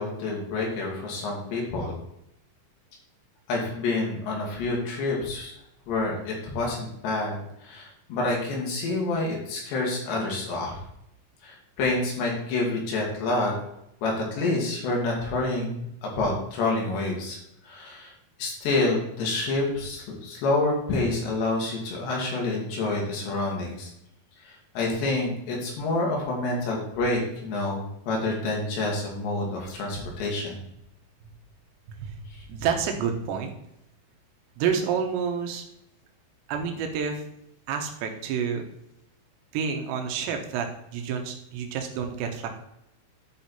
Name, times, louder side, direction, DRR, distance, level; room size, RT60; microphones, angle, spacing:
voice 1, 0.0-2.0 3.5-5.5 5.9-10.8 11.4-13.5 14.0-17.4 17.6-18.1 18.4-23.9 24.4-30.6, left 2 dB, 60° left, -2 dB, 4.1 m, -28 dB
voice 2, 32.5-33.5 34.6-35.6 36.5-37.2 37.7-38.6 39.5-40.7 40.9-42.5, right 7 dB, 70° right, 4 dB, 3.0 m, -28 dB
10.0 x 5.6 x 4.3 m, 0.80 s
omnidirectional pair, 6.0 m